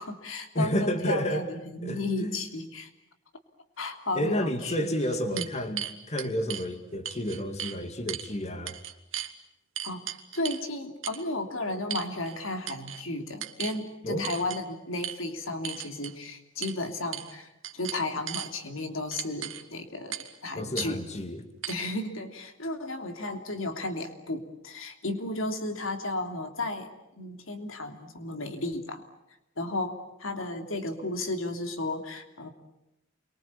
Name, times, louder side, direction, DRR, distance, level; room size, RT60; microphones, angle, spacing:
voice 1, 0.0-2.9 3.8-5.5 9.8-21.0 21.7-26.9 27.2-29.1 29.6-32.5, left 2 dB, 80° left, 6 dB, 3.1 m, -34 dB
voice 2, 0.5-1.5 1.8-2.4 4.2-8.8 14.0-14.3 20.6-21.5, equal, 35° left, 7 dB, 2.3 m, -30 dB
sound 1, 4.1-4.2 4.8-6.7 7.1-7.8 8.1-8.3 8.7-9.3 9.8-10.7 11.0-11.2 11.9-12.4 12.7-13.0 13.4-13.8 14.2-14.6 15.0-15.2 15.6-16.2 16.6-16.8 17.1-17.4 17.6-18.5 19.1-19.6 20.1-20.3 20.8-20.9 21.6-21.7, right 11 dB, 70° right, 1.9 m, -36 dB
29.0 x 24.0 x 8.6 m, 0.89 s
head